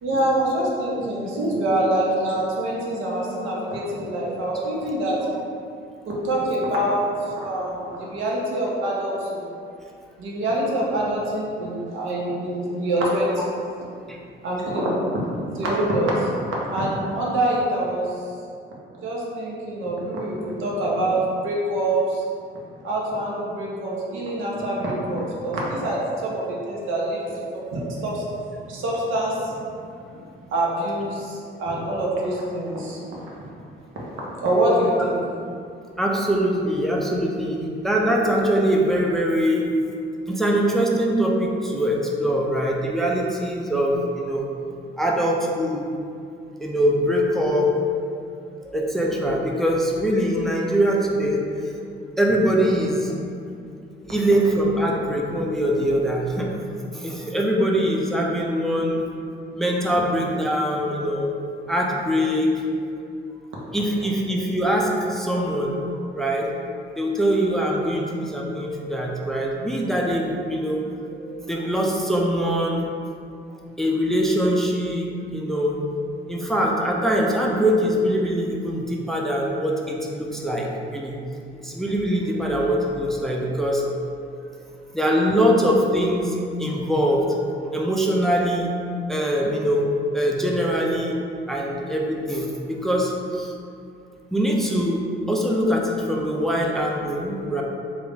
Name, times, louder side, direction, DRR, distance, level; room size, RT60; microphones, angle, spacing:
voice 1, 0.0-5.2 6.1-9.5 10.2-13.4 14.4-15.0 15.5-16.3 16.7-18.2 19.0-22.2 22.8-27.2 27.7-28.3 28.7-29.6 30.5-33.3 34.1-35.2, right 1 dB, 80° right, -4 dB, 0.9 m, -25 dB
voice 2, 36.0-39.7 40.3-44.4 45.0-45.9 46.6-47.7 48.6-51.8 52.2-53.1 54.0-56.5 56.9-59.1 59.5-61.3 61.7-62.5 63.7-65.8 66.1-66.6 67.0-72.8 73.8-75.8 76.3-81.2 81.6-83.8 84.9-86.3 86.6-87.2 87.7-88.7 89.1-91.2 91.5-93.5 94.3-97.6, equal, ahead, -2 dB, 0.4 m, -23 dB
3.4 x 2.4 x 3.8 m, 2.5 s
cardioid pair, 90°, 20 cm